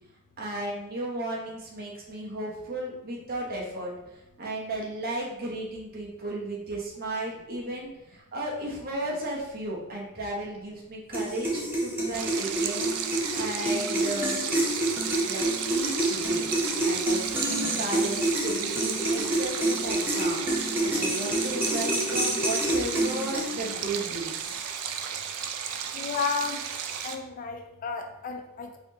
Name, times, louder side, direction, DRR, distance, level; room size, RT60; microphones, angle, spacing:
voice 1, 0.4-3.9 4.4-12.9 13.3-14.4 15.3-16.4 16.8-20.4 20.8-24.8, right 1 dB, 45° right, -3 dB, 0.9 m, -34 dB
sound 1, 11.1-23.7, right 1 dB, 10° right, 0.7 m, -28 dB
Stream, 12.1-27.1, right 8 dB, 85° right, 0.4 m, -34 dB
voice 2, 25.9-26.6 27.0-28.8, left 5 dB, 40° left, 4 dB, 0.4 m, -32 dB
4.1 x 2.7 x 3.0 m, 0.93 s
head